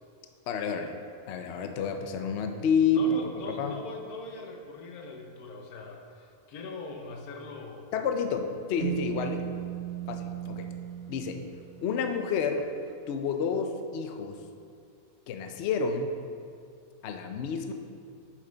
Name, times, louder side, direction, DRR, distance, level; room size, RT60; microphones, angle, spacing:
voice 1, 0.5-1.0 1.3-3.2 3.6-3.8 7.9-9.5 10.1-10.7 11.1-11.4 11.8-12.7 13.1-14.4 15.3-16.2 17.0-17.7, left 5 dB, 65° left, 5 dB, 0.7 m, -29 dB
voice 2, 2.8-7.9 9.3-9.5, left 3 dB, 90° left, 3 dB, 1.3 m, -41 dB
sound 1, 8.8-12.6, right 12 dB, 90° right, 1.1 m, -37 dB
6.9 x 6.4 x 3.9 m, 2.3 s
omnidirectional pair, 1.5 m